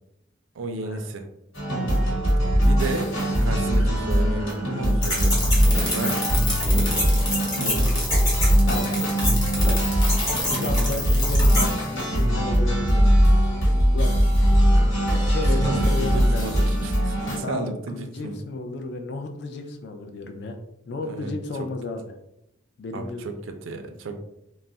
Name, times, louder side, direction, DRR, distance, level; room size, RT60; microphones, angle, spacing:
voice 1, 0.5-1.3 2.3-5.4 5.7-6.3 6.7-8.3 15.5-18.3 21.0-21.3 22.9-24.2, right 2 dB, 75° right, 6 dB, 0.4 m, -33 dB
sound 1, 1.5-17.4, equal, 85° left, 1.3 m, -21 dB
sound 2, 5.0-11.7, left 1 dB, 20° left, 0.9 m, -27 dB
voice 2, 8.7-9.1 9.7-9.8 10.5-13.0 13.9-14.2 15.3-16.5 17.4-20.6 20.9-22.1 22.8-23.2, left 3 dB, 55° left, 5 dB, 0.3 m, -33 dB
2.3 x 2.0 x 3.7 m, 0.83 s
head